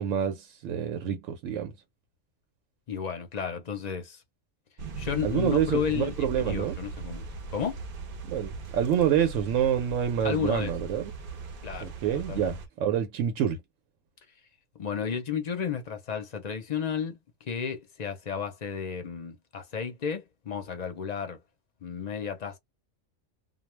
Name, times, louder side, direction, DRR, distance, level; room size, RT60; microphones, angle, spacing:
voice 1, 0.0-1.7 5.2-6.8 8.2-11.1 11.8-13.6, right 9 dB, 80° right, 0.9 m, -27 dB
voice 2, 2.9-4.2 5.0-7.2 7.5-7.8 10.2-10.7 11.6-12.5 14.8-17.2 17.5-21.4 21.8-22.6, left 7 dB, 45° left, 0.5 m, -32 dB
sound 1, 4.8-12.7, right 3 dB, 55° right, 0.7 m, -39 dB
2.3 x 2.1 x 3.0 m
omnidirectional pair, 1.3 m